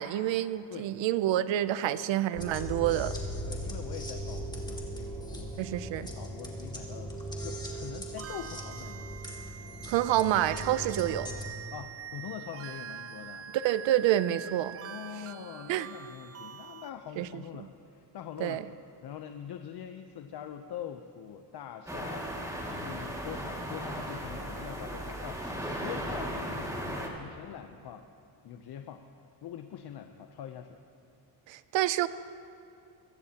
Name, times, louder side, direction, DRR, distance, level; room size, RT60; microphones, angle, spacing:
voice 1, 0.0-3.1 5.6-6.1 9.9-11.3 13.6-14.8 15.7-15.9 17.2-17.4 18.4-18.6 31.5-32.1, right 13 dB, 80° right, 15 dB, 0.6 m, -28 dB
sound 1, 2.4-11.5, equal, 10° left, 2.2 m, -39 dB
voice 2, 3.5-9.2 11.7-13.5 14.8-18.6 19.0-25.5 25.8-28.1 28.4-29.0 29.4-30.8, left 9 dB, 60° left, 7 dB, 0.8 m, -44 dB
sound 2, 8.2-16.9, right 8 dB, 35° right, 0.4 m, -44 dB
sound 3, 21.9-27.1, equal, 5° right, 2.2 m, -36 dB
21.5 x 16.0 x 2.9 m, 2.6 s
cardioid pair, 100°, 45 cm